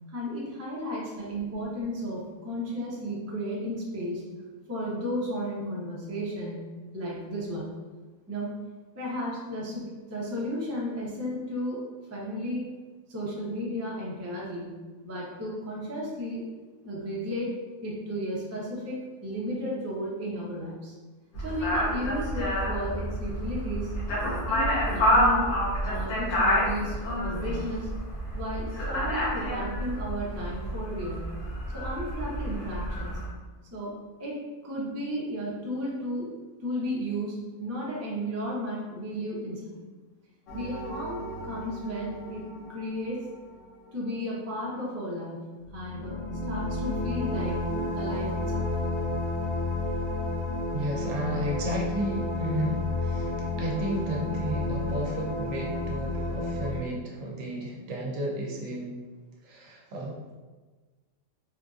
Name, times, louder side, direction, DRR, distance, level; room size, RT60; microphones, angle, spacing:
voice 1, 0.1-4.2 4.7-7.7 8.3-8.5 8.9-11.8 12.1-12.7 13.1-14.8 15.0-16.5 16.8-17.5 17.8-21.0 21.4-23.9 24.5-28.0 28.3-31.3 31.7-33.1 33.7-33.9 34.2-36.3 36.6-39.8 40.5-43.3 43.9-45.4 45.7-47.6 47.9-48.7, equal, 25° right, -6 dB, 0.3 m, -34 dB
sound 1, 21.3-33.3, equal, 90° left, 1.3 m, -28 dB
sound 2, 40.5-44.0 45.7-56.8, left 2 dB, 65° left, 0.9 m, -32 dB
voice 2, 50.7-59.0 59.4-60.2, equal, 70° right, -2 dB, 1.0 m, -33 dB
3.6 x 2.5 x 2.4 m, 1.3 s
omnidirectional pair, 1.5 m